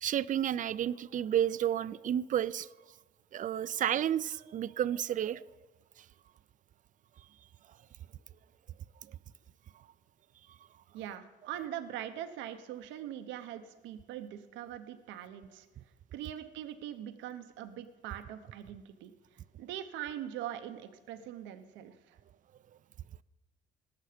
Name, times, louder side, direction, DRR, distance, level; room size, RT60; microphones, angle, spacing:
voice 1, 0.0-2.7 3.3-5.4, right 10 dB, 45° right, 18 dB, 0.4 m, -31 dB
voice 2, 10.9-15.7 16.1-19.1 19.6-22.2, right 11 dB, 90° right, 9 dB, 0.8 m, -42 dB
18.5 x 6.7 x 5.0 m, 1.2 s
cardioid pair, 95°, 19 cm